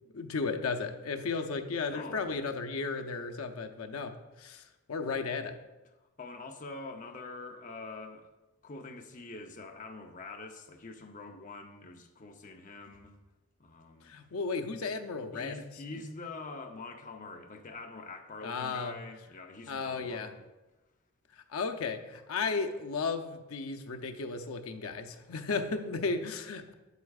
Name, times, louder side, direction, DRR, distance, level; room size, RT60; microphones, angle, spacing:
voice 1, 0.1-4.6 4.9-5.6 14.0-15.5 18.4-19.0 19.7-20.3 21.5-26.7, left 4 dB, 90° left, 0.6 m, -34 dB
voice 2, 1.9-2.4 6.2-8.3 8.6-13.2 13.6-14.1 15.3-20.4, left 3 dB, 40° left, 0.7 m, -45 dB
8.3 x 8.1 x 2.4 m
head